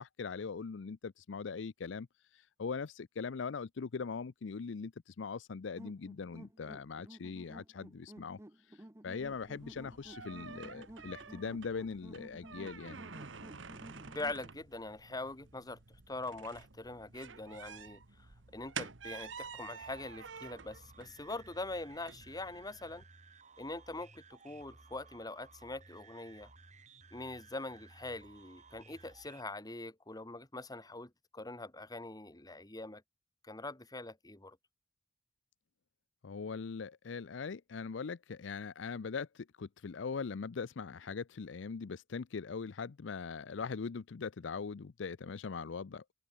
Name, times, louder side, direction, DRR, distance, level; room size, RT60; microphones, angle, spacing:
voice 1, 0.0-2.1 2.3-8.4 8.7-8.8 9.0-13.0 36.2-46.1, left 5 dB, 75° left, 0.5 m, -41 dB
sound 1, 5.8-14.4, right 1 dB, 15° right, 1.0 m, -53 dB
sound 2, 9.2-23.0, right 5 dB, 80° right, 1.5 m, -50 dB
voice 2, 14.1-15.8 16.1-18.0 18.5-23.0 23.6-26.5 27.1-33.0 33.4-34.6, left 2 dB, 20° left, 2.2 m, -43 dB
sound 3, 19.8-29.4, right 4 dB, 40° right, 4.7 m, -58 dB
open air
head